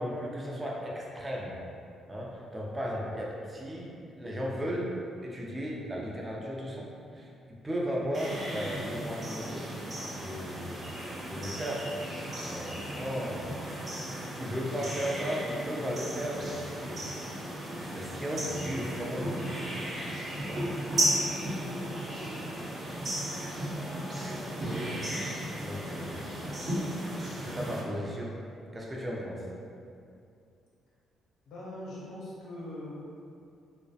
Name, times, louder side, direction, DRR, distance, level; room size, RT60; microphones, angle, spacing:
voice 1, 0.0-1.6 2.1-4.9 5.2-6.9 7.1-7.3 7.6-9.7 10.1-10.8 11.3-11.9 12.4-13.5 14.4-17.1 17.9-19.6 20.3-20.7 25.6-26.3 27.4-28.4 28.7-29.4, equal, 20° right, -3 dB, 0.4 m, -35 dB
sound 1, 8.1-27.8, right 1 dB, 45° right, 0.7 m, -35 dB
voice 2, 31.5-33.0, left 1 dB, 80° left, -6 dB, 0.7 m, -41 dB
2.3 x 2.0 x 2.6 m, 2.5 s
cardioid pair, 90°, 0 cm